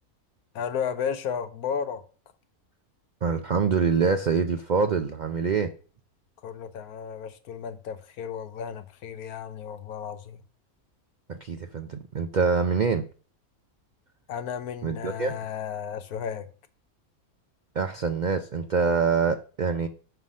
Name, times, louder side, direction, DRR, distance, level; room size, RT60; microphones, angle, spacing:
voice 1, 0.5-2.0 6.4-10.4 14.3-16.5, left 7 dB, 90° left, 1.3 m, -33 dB
voice 2, 3.2-5.7 11.3-13.0 14.8-15.4 17.7-19.9, right 5 dB, 70° right, 0.4 m, -25 dB
5.7 x 5.6 x 6.3 m
omnidirectional pair, 1.5 m